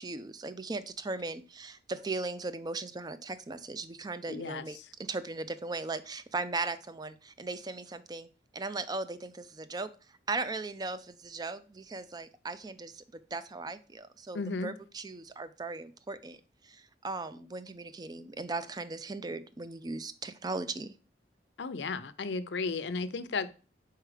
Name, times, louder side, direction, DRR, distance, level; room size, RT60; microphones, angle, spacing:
voice 1, 0.0-8.3 8.5-9.9 10.3-13.0 13.3-16.4 16.6-20.9, right 3 dB, 25° right, 0.4 m, -38 dB
voice 2, 4.3-4.9 14.3-14.7 21.6-23.5, left 4 dB, 80° left, 0.6 m, -34 dB
4.8 x 4.5 x 4.9 m
head